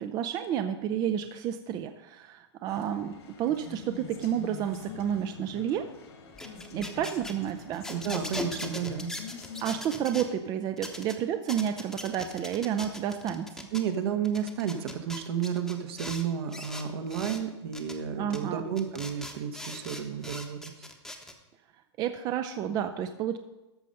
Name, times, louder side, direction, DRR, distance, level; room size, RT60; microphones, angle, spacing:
voice 1, 0.0-3.1 3.4-5.9 6.7-7.8 9.6-13.7 18.2-18.6 22.0-23.4, right 9 dB, 25° right, 8 dB, 0.5 m, -30 dB
sound 1, 2.7-9.8, left 4 dB, 75° left, 2.1 m, -45 dB
sound 2, 6.3-10.3 10.8-11.1 11.5-13.8 14.2-16.2 16.5-17.4 17.7-17.9 18.3-18.4 18.8-21.3, left 1 dB, 5° left, 0.9 m, -40 dB
voice 2, 7.9-9.2 13.7-20.7, right 8 dB, 60° right, 6 dB, 1.2 m, -32 dB
13.5 x 5.2 x 5.5 m, 1.0 s
hypercardioid pair, 130°, 14 cm